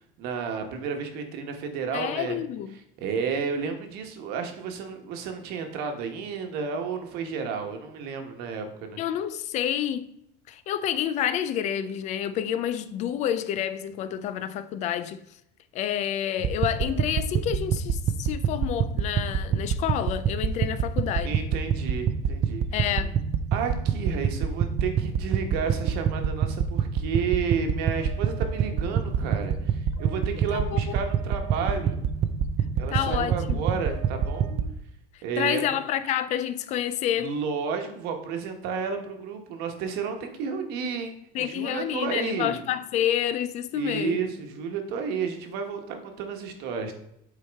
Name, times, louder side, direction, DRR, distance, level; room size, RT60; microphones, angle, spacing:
voice 1, 0.2-2.4 3.0-9.0 21.2-22.9 23.5-32.0 32.7-34.5 35.2-35.8 37.2-42.6 43.7-46.9, right 6 dB, 65° right, 1.2 m, -32 dB
voice 2, 1.9-2.7 9.0-10.1 10.5-15.2 15.7-21.4 22.7-23.2 30.5-30.9 32.9-33.6 35.1-37.3 41.3-44.3, left 10 dB, 40° left, 0.4 m, -29 dB
sound 1, 16.4-34.7, right 7 dB, 35° right, 0.5 m, -27 dB
8.3 x 4.6 x 3.5 m
cardioid pair, 160°, 18 cm